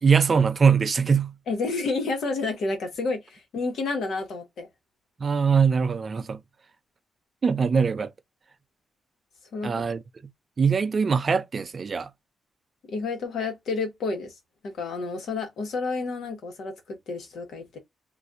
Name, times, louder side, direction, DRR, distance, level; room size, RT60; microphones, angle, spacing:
voice 1, 0.0-1.3 5.2-6.4 7.4-8.1 9.6-10.0 10.6-12.1, right 6 dB, 35° right, 0.4 m, -22 dB
voice 2, 1.5-4.7 9.5-9.8 12.9-14.3 14.6-17.8, left 3 dB, 75° left, 1.3 m, -30 dB
4.0 x 2.5 x 2.4 m
wide cardioid pair, 150°, 0 cm